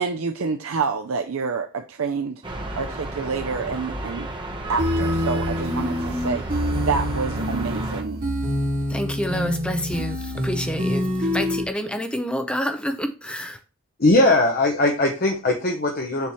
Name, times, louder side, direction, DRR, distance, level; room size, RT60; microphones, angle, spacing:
voice 1, 0.0-2.4 2.7-4.3 4.7-8.2, right 5 dB, 75° right, 0.5 m, -28 dB
sound 1, 2.4-8.0, right 1 dB, 20° right, 0.9 m, -32 dB
sound 2, 4.8-11.6, equal, 40° right, 1.6 m, -26 dB
voice 2, 8.9-13.6, equal, 5° left, 0.5 m, -28 dB
voice 3, 14.0-16.3, left 2 dB, 45° left, 0.9 m, -19 dB
6.9 x 3.1 x 5.5 m
head